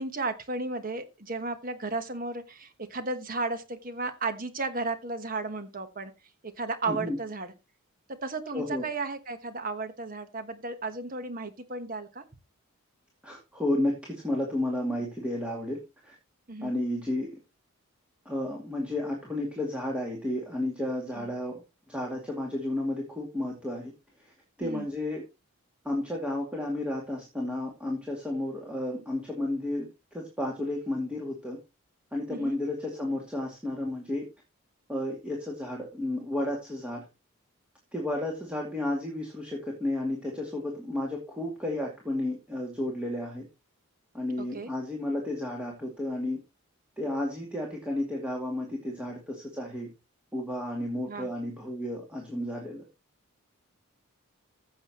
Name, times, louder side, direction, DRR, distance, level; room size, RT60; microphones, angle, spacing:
voice 1, 0.0-6.1 6.6-7.5 8.2-12.2 16.5-16.7 21.2-21.3 24.6-24.9 32.3-32.5 44.4-44.7 51.1-51.3, right 3 dB, 40° right, 1.2 m, -34 dB
voice 2, 6.9-7.2 8.5-8.8 13.2-16.2 16.6-17.3 18.3-21.6 21.9-23.9 24.2-24.3 24.6-25.2 25.8-31.6 32.1-34.3 34.9-37.1 37.9-43.5 44.1-46.4 47.0-49.9 50.3-52.9, left 1 dB, 5° right, 2.4 m, -32 dB
15.5 x 7.8 x 3.0 m
head